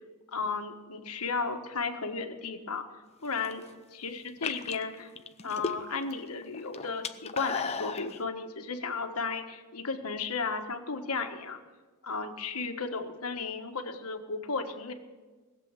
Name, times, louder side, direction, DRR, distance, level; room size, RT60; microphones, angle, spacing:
voice 1, 0.3-2.8 3.2-3.6 4.0-5.1 5.4-11.6 12.0-14.9, left 4 dB, 85° left, 6 dB, 1.5 m, -34 dB
sound 1, 3.2-3.7 4.3-6.1 6.4-8.1, left 5 dB, 30° left, 0.7 m, -35 dB
19.5 x 7.6 x 8.9 m, 1.3 s
head